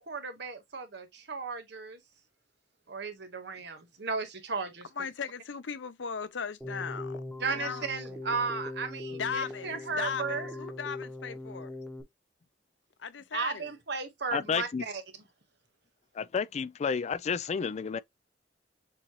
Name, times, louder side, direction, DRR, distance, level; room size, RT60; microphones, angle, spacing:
voice 1, 0.0-2.0 2.9-4.9 7.4-10.5 13.3-15.0, right 4 dB, 70° right, 1.2 m, -35 dB
voice 2, 5.0-7.9 9.1-11.7 13.0-13.7, left 6 dB, 85° left, 0.6 m, -37 dB
Keyboard (musical), 6.6-12.0, left 2 dB, 5° left, 1.0 m, -40 dB
voice 3, 14.3-14.8 16.2-18.0, left 6 dB, 40° left, 0.3 m, -31 dB
7.0 x 2.5 x 3.0 m
head